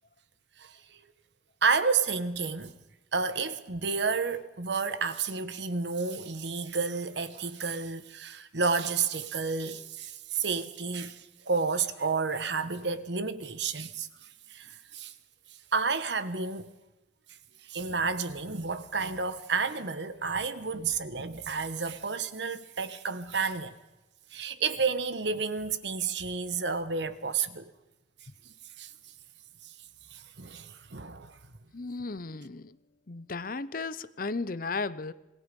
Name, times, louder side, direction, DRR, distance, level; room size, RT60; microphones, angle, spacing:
voice 1, 0.6-1.0 1.6-2.7 3.1-14.1 14.5-15.1 15.7-16.7 17.6-23.7 24.3-27.7 28.8-28.9 29.6-29.7 30.1-31.4, right 5 dB, 65° right, 1.2 m, -31 dB
voice 2, 31.7-32.8 33.1-35.1, left 3 dB, 45° left, 0.7 m, -35 dB
26.5 x 20.5 x 5.4 m
head